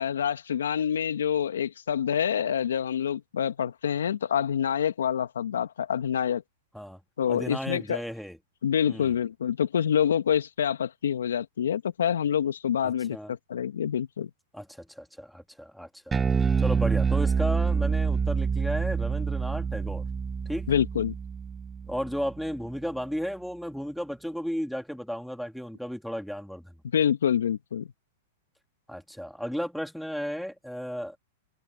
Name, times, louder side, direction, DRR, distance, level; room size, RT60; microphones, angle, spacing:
voice 1, 0.0-6.4 7.2-8.0 8.6-14.3 20.7-21.1 26.9-27.9, left 8 dB, 80° left, 2.2 m, -26 dB
voice 2, 7.3-8.4 8.9-9.2 12.8-13.3 14.5-16.2 16.6-20.0 20.5-20.7 21.9-26.7 28.9-31.1, equal, ahead, 3.0 m, -34 dB
Bass guitar, 16.1-22.6, right 6 dB, 15° right, 0.7 m, -27 dB
hypercardioid pair, 115°, 0 cm